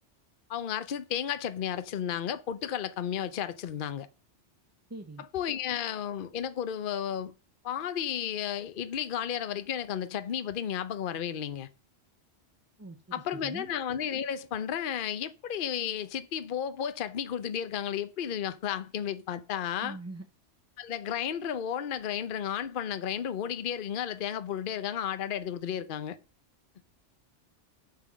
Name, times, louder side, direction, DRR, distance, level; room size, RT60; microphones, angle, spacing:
voice 1, 0.5-4.1 5.3-7.3 7.6-11.7 13.1-20.0 20.8-26.2, left 9 dB, 50° left, 0.8 m, -33 dB
voice 2, 4.9-5.3 12.8-13.0 13.3-13.7 19.8-20.3, right 2 dB, 15° right, 0.6 m, -42 dB
8.6 x 7.6 x 6.2 m
omnidirectional pair, 1.2 m